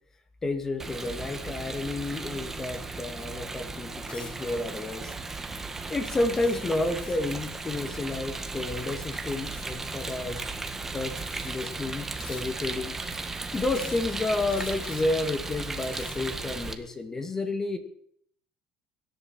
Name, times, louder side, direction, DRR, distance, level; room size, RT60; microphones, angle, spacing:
voice 1, 0.4-5.1 5.9-10.5 10.9-13.0 13.5-17.8, left 2 dB, 20° left, 8 dB, 1.9 m, -31 dB
Rain, 0.8-16.7, right 3 dB, 15° right, 1.6 m, -36 dB
sound 1, 4.1-4.5 5.1-5.4 6.3-7.4 9.4-9.8 10.7-10.8 11.2-11.7 12.2-12.8 13.7-14.1 14.5-15.2 15.7-16.3, left 5 dB, 35° left, 3.9 m, -47 dB
23.5 x 11.5 x 4.4 m, 0.64 s
cardioid pair, 140°, 2 cm